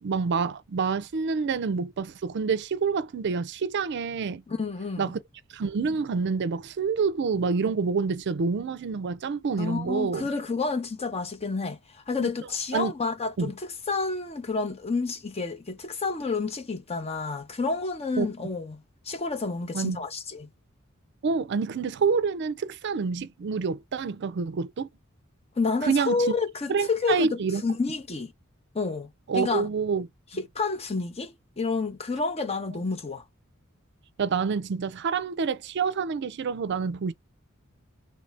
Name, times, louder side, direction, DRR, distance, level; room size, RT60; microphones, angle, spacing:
voice 1, 0.0-4.4 5.0-5.2 5.5-10.3 12.2-12.3 12.7-12.9 13.4-13.5 18.2-18.3 19.7-20.0 21.2-24.9 25.8-26.2 26.7-27.6 29.3-30.1 30.3-30.4 32.7-32.8 34.2-37.1, right 5 dB, 55° right, 0.4 m, -27 dB
voice 2, 4.5-5.1 9.6-13.6 13.9-20.5 25.6-28.3 28.7-29.7 30.4-33.2, left 4 dB, 30° left, 0.7 m, -29 dB
3.2 x 2.6 x 3.2 m
head